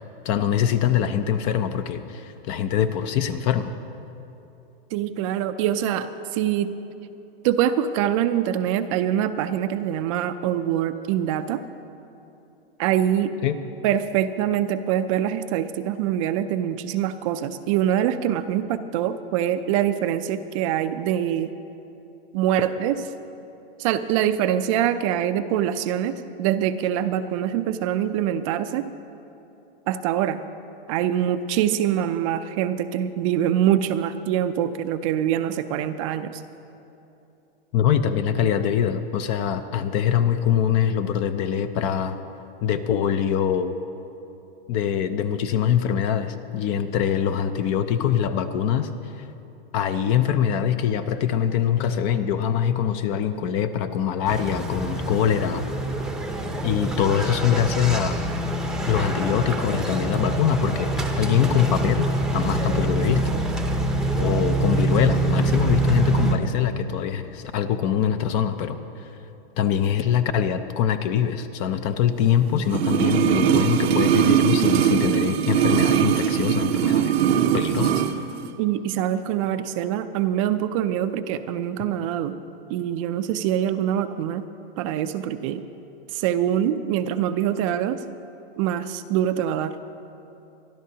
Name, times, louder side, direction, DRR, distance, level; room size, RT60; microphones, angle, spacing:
voice 1, 0.2-3.7 13.4-13.6 37.7-42.2 42.6-43.7 44.7-49.3 49.7-55.7 56.6-58.2 58.9-63.3 64.2-69.1 69.6-78.0, left 9 dB, 25° left, 10 dB, 0.4 m, -23 dB
voice 2, 4.9-6.7 7.4-11.6 12.8-13.3 13.8-21.5 22.3-23.0 23.8-28.9 29.9-30.4 30.9-36.4 78.6-82.4 82.7-84.5 84.8-85.6 86.1-88.0 88.6-89.8, right 10 dB, 35° right, 11 dB, 0.4 m, -24 dB
sound 1, 54.3-66.4, right 2 dB, ahead, 0.7 m, -25 dB
sound 2, 72.7-78.2 78.4-78.5, right 9 dB, 85° right, 0.8 m, -20 dB
24.0 x 12.5 x 2.8 m, 2.8 s
supercardioid pair, 150°, 30 cm